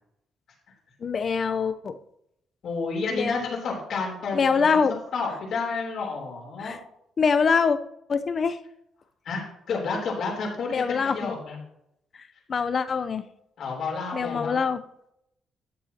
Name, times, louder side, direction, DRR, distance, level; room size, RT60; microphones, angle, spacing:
voice 1, 1.0-2.0 3.1-3.5 4.3-5.0 6.6-6.8 7.2-7.8 8.1-8.6 10.7-11.4 12.5-13.2 14.1-14.8, left 5 dB, 45° left, 11 dB, 0.6 m, -24 dB
voice 2, 2.6-6.8 9.2-11.6 13.6-14.6, left 4 dB, 65° left, -1 dB, 3.4 m, -30 dB
12.5 x 8.4 x 2.9 m, 0.78 s
cardioid pair, 90°, 0 cm